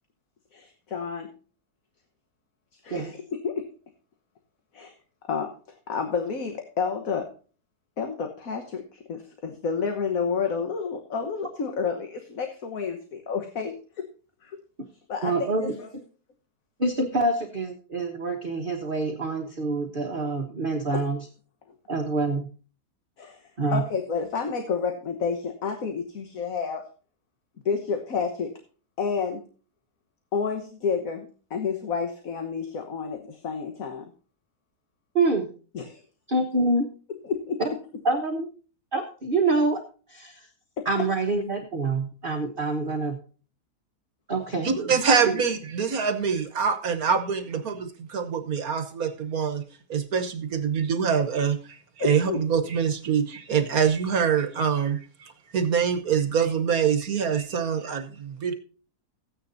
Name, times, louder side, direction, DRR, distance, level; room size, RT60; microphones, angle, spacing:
voice 1, 0.5-1.3 2.8-3.7 4.7-4.9 5.3-5.5 5.9-7.3 8.0-14.0 14.4-14.6 15.1-15.9 20.9-21.0 23.2-23.4 23.7-26.8 27.6-28.5 29.0-29.4 30.3-34.0 35.7-36.0 37.2-37.8 40.8-40.9 52.0-52.7, left 5 dB, 60° left, 5 dB, 1.6 m, -30 dB
voice 2, 15.2-15.7 16.8-21.2 21.9-22.5 23.6-23.8 35.1-35.5 36.3-36.9 38.0-38.5 38.9-39.8 40.1-40.4 40.8-43.2 44.3-44.7 45.3-45.4, right 3 dB, 35° right, 2 dB, 1.4 m, -26 dB
voice 3, 44.6-49.6 49.9-58.5, right 6 dB, 65° right, 8 dB, 1.5 m, -25 dB
15.0 x 9.8 x 2.6 m, 0.37 s
omnidirectional pair, 1.7 m